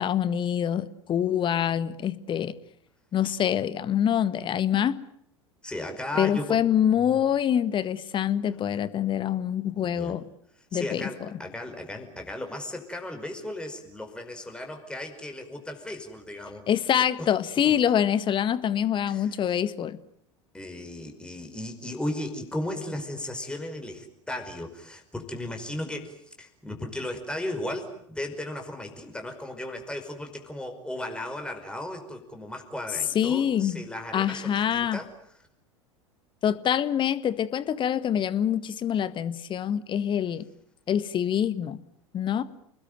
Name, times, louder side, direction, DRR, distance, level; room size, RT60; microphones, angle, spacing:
voice 1, 0.0-2.5 3.1-5.0 6.1-10.2 10.7-11.1 16.7-20.0 33.1-33.8 34.1-35.0 36.4-40.5 40.9-41.8 42.1-42.4, left 9 dB, 30° left, 15 dB, 1.6 m, -25 dB
voice 2, 5.6-6.6 7.0-7.2 9.8-10.1 10.7-16.7 17.2-17.3 17.6-17.8 19.1-19.3 20.5-35.1, left 1 dB, 5° left, 4 dB, 5.2 m, -36 dB
30.0 x 20.5 x 9.2 m, 0.71 s
figure-of-eight pair, 80°, 16 cm